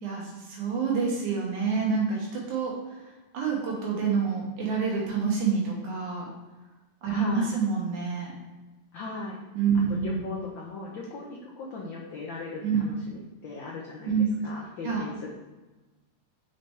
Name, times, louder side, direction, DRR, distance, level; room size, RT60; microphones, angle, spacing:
voice 1, 0.0-3.0 3.3-6.3 7.0-8.3 9.6-10.2 12.6-12.9 14.0-14.3 14.8-15.0, right 5 dB, 80° right, -3 dB, 3.0 m, -27 dB
voice 2, 7.1-7.5 8.9-9.4 9.9-14.1 14.4-15.3, left 3 dB, 85° left, -2 dB, 1.0 m, -38 dB
6.8 x 6.0 x 3.2 m, 1.1 s
omnidirectional pair, 3.4 m